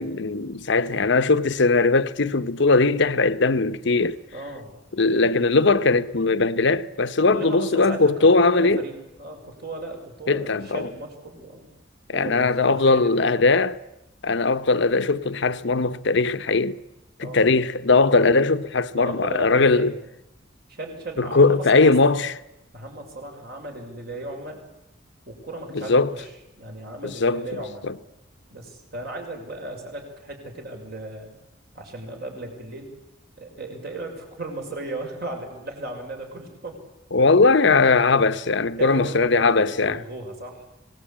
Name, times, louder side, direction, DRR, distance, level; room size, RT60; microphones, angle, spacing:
voice 1, 0.0-4.2 5.0-8.8 10.3-10.9 12.1-13.7 14.2-16.8 17.2-20.0 21.2-22.3 25.7-26.1 27.0-27.4 27.8-27.9 37.1-40.0, left 3 dB, 65° left, 0.9 m, -19 dB
voice 2, 4.3-4.8 7.2-11.7 12.1-13.5 17.2-17.6 17.9-18.3 18.9-20.0 20.7-22.2 22.7-24.6 25.3-27.9 28.5-31.3 31.7-32.9 33.4-36.8 38.8-40.7, right 2 dB, 55° right, 6.1 m, -36 dB
26.0 x 19.0 x 8.8 m
head